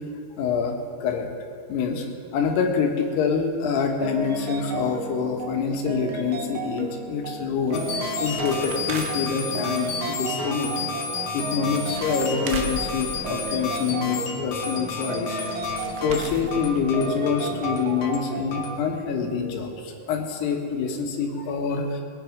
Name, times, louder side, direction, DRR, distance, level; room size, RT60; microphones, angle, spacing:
voice 1, 0.4-1.3 1.7-2.1 2.3-7.8 8.2-10.9 11.3-15.6 16.0-22.0, left 6 dB, 90° left, 2 dB, 3.5 m, -26 dB
sound 1, 4.0-18.8, right 3 dB, 70° right, 1.5 m, -34 dB
sound 2, 7.7-18.8, left 5 dB, 60° left, 2.4 m, -32 dB
sound 3, 7.7-9.5 11.3-11.4 11.6-13.8 15.1-15.2 15.4-17.1 17.5-17.6 17.7-17.8 18.4-18.5 18.7-18.8, right 4 dB, 85° right, 3.2 m, -37 dB
20.5 x 9.9 x 5.1 m, 2.2 s
omnidirectional pair, 4.5 m